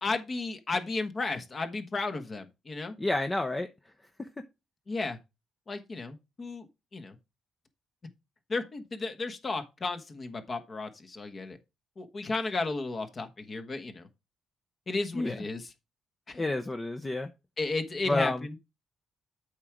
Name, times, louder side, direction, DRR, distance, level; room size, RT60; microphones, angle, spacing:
voice 1, 0.0-2.9 4.9-5.2 5.7-6.7 6.9-7.1 8.5-11.6 12.0-14.1 14.9-15.6 16.3-16.4 17.6-18.6, left 3 dB, 35° left, 1.4 m, -33 dB
voice 2, 3.0-3.7 4.2-4.3 15.1-15.4 16.4-17.3 18.1-18.5, left 2 dB, 20° left, 0.8 m, -30 dB
8.2 x 4.7 x 5.0 m
cardioid pair, 90°, 0 cm